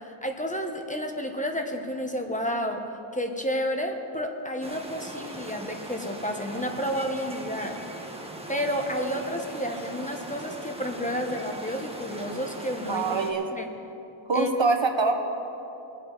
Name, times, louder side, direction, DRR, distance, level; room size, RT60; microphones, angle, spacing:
voice 1, 0.0-2.8 3.1-7.8 8.5-13.1 13.5-13.7 14.3-14.5, equal, 15° left, 3 dB, 1.4 m, -31 dB
sound 1, 4.6-13.3, right 1 dB, 10° right, 1.6 m, -40 dB
voice 2, 12.9-13.5 14.3-15.2, right 4 dB, 65° right, 5 dB, 1.2 m, -24 dB
22.0 x 8.4 x 4.2 m, 2.9 s
wide cardioid pair, 40°, 48 cm